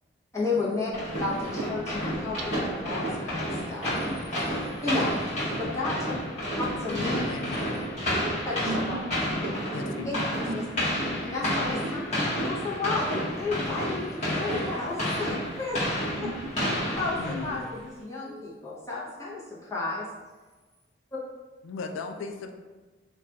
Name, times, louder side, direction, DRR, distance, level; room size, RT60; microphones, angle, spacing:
voice 1, 0.3-0.9 1.2-5.2 5.6-6.1 6.6-7.3 8.4-8.7 10.0-10.2 10.5-10.6 11.3-15.8 16.1-16.3 17.0-20.1, left 3 dB, 15° left, -7 dB, 0.7 m, -32 dB
sound 1, 0.9-17.7, equal, 35° left, 1.0 m, -30 dB
voice 2, 6.9-7.6 9.7-10.4 17.2-17.6 21.6-22.5, left 4 dB, 85° left, 5 dB, 0.3 m, -36 dB
voice 3, 8.6-10.1 10.3-12.1 16.2-16.8 17.5-17.6 18.2-18.6, right 2 dB, 65° right, 3 dB, 0.4 m, -39 dB
2.3 x 2.3 x 3.9 m, 1.3 s
head